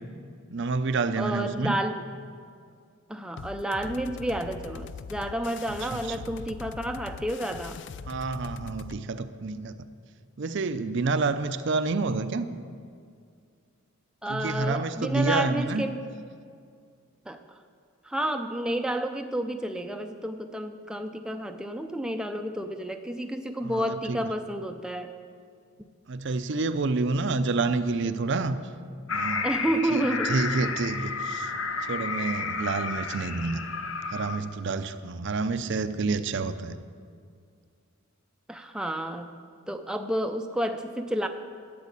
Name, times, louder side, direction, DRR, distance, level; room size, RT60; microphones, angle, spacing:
voice 1, 0.5-1.8 5.7-6.2 8.1-9.9 10.4-12.5 14.3-15.9 23.6-24.2 26.1-28.6 29.1-29.5 29.9-30.0 30.3-31.5 31.8-33.6 34.1-36.8, right 3 dB, 55° right, 10 dB, 0.5 m, -28 dB
voice 2, 1.2-2.0 3.1-7.8 14.2-16.0 17.3-17.6 18.0-25.1 29.4-30.4 38.5-39.3 39.7-41.3, right 1 dB, 5° right, 5 dB, 0.5 m, -30 dB
sound 1, 3.4-9.0, left 5 dB, 55° left, 0.4 m, -41 dB
sound 2, 29.1-34.4, left 4 dB, 75° left, 1.0 m, -31 dB
12.5 x 7.5 x 8.3 m, 2.2 s
head